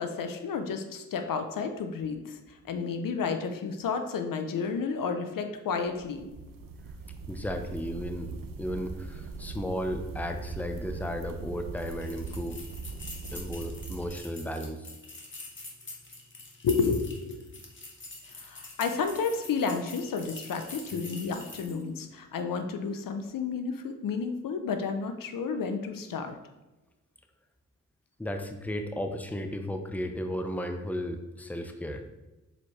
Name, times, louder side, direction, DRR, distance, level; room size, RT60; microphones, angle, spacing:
voice 1, 0.0-6.3 16.6-17.4 18.4-26.4, left 5 dB, 75° left, 7 dB, 0.7 m, -31 dB
sound 1, 5.9-14.1, right 4 dB, 75° right, 0.7 m, -40 dB
voice 2, 7.3-12.6 13.3-14.9 28.2-32.1, equal, 5° left, 5 dB, 0.7 m, -34 dB
sound 2, 11.8-21.9, left 2 dB, 35° left, 1.7 m, -45 dB
6.8 x 4.4 x 3.2 m, 1.1 s
cardioid pair, 55°, 34 cm